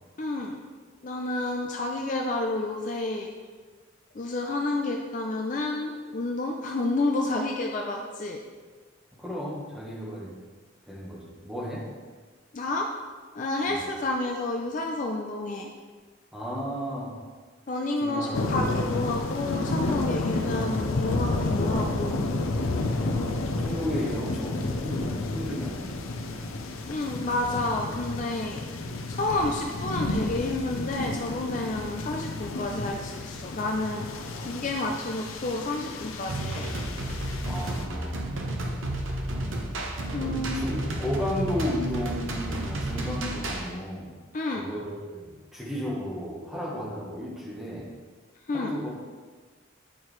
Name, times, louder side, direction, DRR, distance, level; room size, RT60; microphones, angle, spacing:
voice 1, 0.2-0.6 1.0-3.3 4.1-8.4 12.5-12.9 13.3-15.7 17.7-22.2 26.9-28.6 29.1-34.1 34.4-36.7 40.1-40.7 44.3-44.6 48.5-48.7, left 2 dB, 40° left, 1 dB, 0.4 m, -30 dB
voice 2, 9.2-10.3 10.9-11.8 13.7-13.8 16.3-17.2 18.0-18.5 22.9-26.0 37.5-38.2 39.3-39.5 40.2-44.1 44.5-47.9 48.5-48.9, equal, ahead, -5 dB, 1.1 m, -34 dB
sound 1, 18.3-37.9, left 2 dB, 90° left, 0.6 m, -31 dB
sound 2, 36.3-43.7, right 1 dB, 75° right, 0.9 m, -31 dB
8.9 x 4.6 x 3.1 m, 1.5 s
head